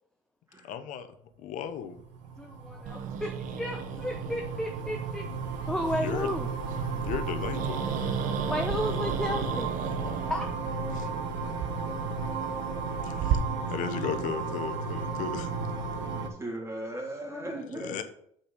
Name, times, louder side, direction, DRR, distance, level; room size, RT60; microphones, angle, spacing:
voice 1, 0.6-1.1 1.4-2.0 5.9-6.3 6.9-7.8 10.9-11.1 13.0-15.5 17.8-18.0, left 8 dB, 60° left, 10 dB, 1.0 m, -35 dB
sound 1, 1.9-16.3, right 4 dB, 85° right, 1.2 m, -34 dB
voice 2, 2.4-5.3 5.7-6.5 8.5-9.7 10.3-10.5 17.2-17.6, left 1 dB, 5° left, 4 dB, 0.8 m, -33 dB
Growling, 2.9-13.4, right 9 dB, 60° right, 0.9 m, -36 dB
voice 3, 16.1-18.0, right 1 dB, 20° right, -1 dB, 3.0 m, -38 dB
6.7 x 5.2 x 5.3 m, 0.68 s
supercardioid pair, 85°, 15 cm